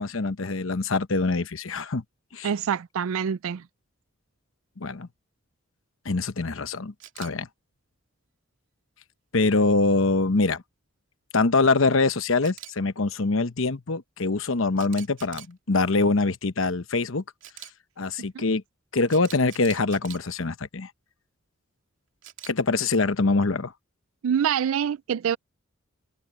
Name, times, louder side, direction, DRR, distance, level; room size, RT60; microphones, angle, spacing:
voice 1, 0.0-2.0 2.3-2.5 4.8-5.1 6.0-7.5 9.3-10.6 11.3-17.2 18.0-18.6 18.9-20.9 22.5-23.7, left 3 dB, 70° left, 1.0 m, -24 dB
voice 2, 2.4-3.6 18.3-18.4 24.2-25.4, right 8 dB, 80° right, 0.4 m, -25 dB
Camera, 7.0-7.3 12.4-12.7 14.8-15.5 17.4-17.7 19.1-20.2 22.2-22.5, right 12 dB, 60° right, 3.1 m, -43 dB
head